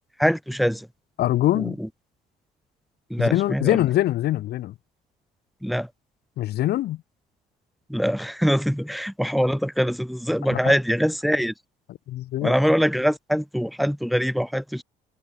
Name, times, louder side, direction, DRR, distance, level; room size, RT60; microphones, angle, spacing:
voice 1, 0.2-0.9 1.5-1.9 3.1-3.8 5.6-5.9 7.9-11.5 12.4-14.8, equal, ahead, 3.0 m, -23 dB
voice 2, 1.2-1.7 3.2-4.7 6.4-7.0 10.5-10.7 12.1-12.5, left 14 dB, 70° left, 4.8 m, -23 dB
cardioid pair, 110°, 17 cm